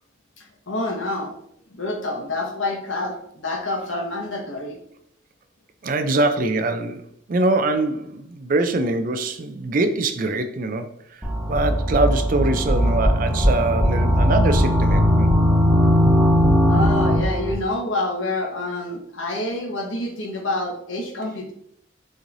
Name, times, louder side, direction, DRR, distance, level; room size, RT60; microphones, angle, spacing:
voice 1, 0.4-1.3 1.7-4.8 16.7-21.5, left 2 dB, 80° left, 1 dB, 1.2 m, -27 dB
voice 2, 5.8-15.3, right 2 dB, 45° right, 9 dB, 0.4 m, -23 dB
sound 1, 11.2-17.5, equal, 5° right, 0.7 m, -18 dB
6.3 x 3.1 x 2.6 m, 0.69 s
head